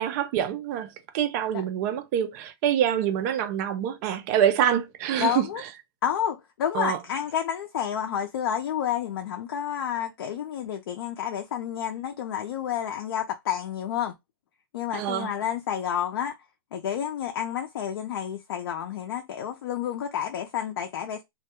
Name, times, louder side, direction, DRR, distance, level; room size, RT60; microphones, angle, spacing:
voice 1, 0.0-5.7 6.7-7.0 14.9-15.3, right 9 dB, 40° right, 0.4 m, -26 dB
voice 2, 5.2-5.6 6.0-14.1 14.7-16.4 16.7-21.2, left 9 dB, 70° left, 0.5 m, -30 dB
2.2 x 2.1 x 2.8 m
hypercardioid pair, 150°, 13 cm